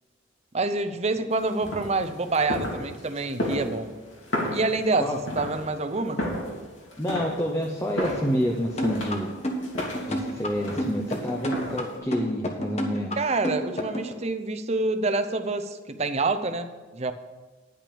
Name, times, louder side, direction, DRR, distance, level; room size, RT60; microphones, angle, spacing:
voice 1, 0.5-3.9 4.5-6.2 13.2-17.1, right 3 dB, 30° right, 9 dB, 0.6 m, -27 dB
sound 1, 1.3-12.0, equal, 80° left, 2.6 m, -34 dB
voice 2, 7.0-9.3 10.1-13.2, equal, 15° left, 0 dB, 0.7 m, -28 dB
sound 2, 8.8-14.1, equal, 35° left, 1.2 m, -30 dB
10.5 x 6.0 x 6.9 m, 1.3 s
head